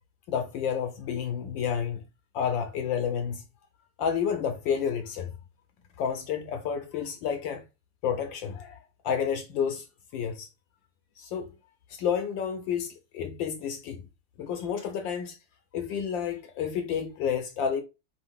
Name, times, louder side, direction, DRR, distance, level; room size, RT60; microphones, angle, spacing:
voice 1, 0.3-2.0 2.3-3.4 4.0-5.3 6.0-7.6 8.0-8.8 9.0-9.9 10.1-10.5 11.2-11.5 11.9-14.0 14.4-15.4 15.7-17.8, left 7 dB, 70° left, 1.2 m, -30 dB
5.4 x 2.5 x 3.5 m
omnidirectional pair, 2.4 m